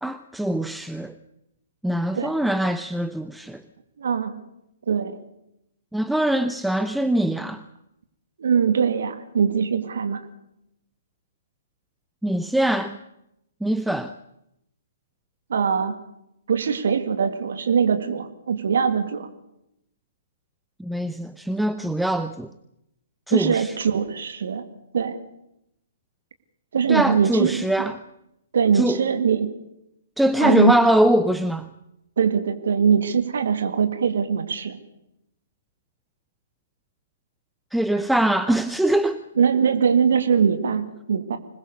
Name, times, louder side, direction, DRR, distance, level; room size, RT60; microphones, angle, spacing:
voice 1, 0.0-1.1 1.8-3.6 5.9-7.6 12.2-13.0 13.6-14.1 20.8-22.5 23.3-23.7 26.9-28.0 28.7-29.0 30.2-31.7 37.7-39.2, right 1 dB, ahead, 11 dB, 0.8 m, -22 dB
voice 2, 4.0-4.3 4.9-5.2 8.4-10.2 15.5-16.0 16.5-19.3 23.3-24.7 24.9-25.2 26.7-27.9 28.5-29.5 30.4-30.7 32.2-34.8 39.4-41.4, right 6 dB, 60° right, 9 dB, 2.1 m, -22 dB
26.0 x 20.5 x 6.7 m, 0.82 s
figure-of-eight pair, 120°, 0 cm